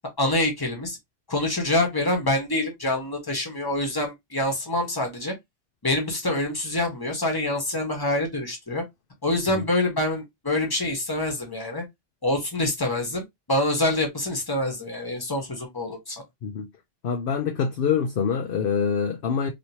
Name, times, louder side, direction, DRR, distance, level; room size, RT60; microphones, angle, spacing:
voice 1, 0.2-1.0 1.3-5.3 5.8-8.8 9.2-11.8 12.2-16.2, left 1 dB, 20° left, 1.2 m, -26 dB
voice 2, 17.0-19.5, left 6 dB, 60° left, 0.7 m, -25 dB
3.1 x 2.9 x 2.8 m
omnidirectional pair, 1.3 m